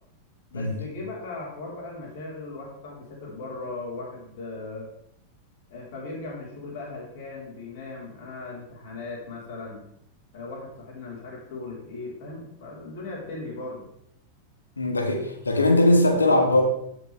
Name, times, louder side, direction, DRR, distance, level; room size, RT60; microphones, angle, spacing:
voice 1, 0.5-4.9 5.7-9.9 10.3-13.9, left 3 dB, 50° left, -3 dB, 3.9 m, -38 dB
voice 2, 14.8-16.6, left 2 dB, 75° left, 6 dB, 1.4 m, -20 dB
15.5 x 5.8 x 3.4 m, 0.74 s
figure-of-eight pair, 90°, 0 cm